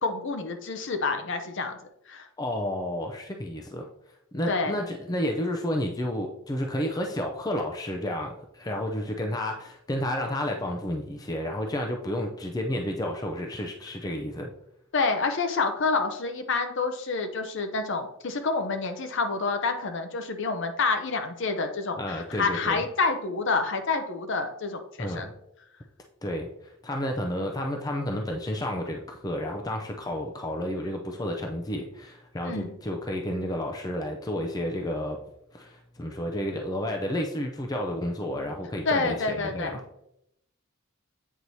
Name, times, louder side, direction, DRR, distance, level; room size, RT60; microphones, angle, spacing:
voice 1, 0.0-1.8 2.1-2.3 4.5-4.8 14.9-25.3 32.4-32.8 38.9-39.8, left 4 dB, 60° left, 7 dB, 0.7 m, -28 dB
voice 2, 2.4-3.9 4.3-14.5 22.0-22.8 25.0-25.3 26.2-26.5 26.8-35.2 35.5-39.8, left 1 dB, 20° left, 2 dB, 0.5 m, -31 dB
8.0 x 4.5 x 2.7 m, 0.79 s
head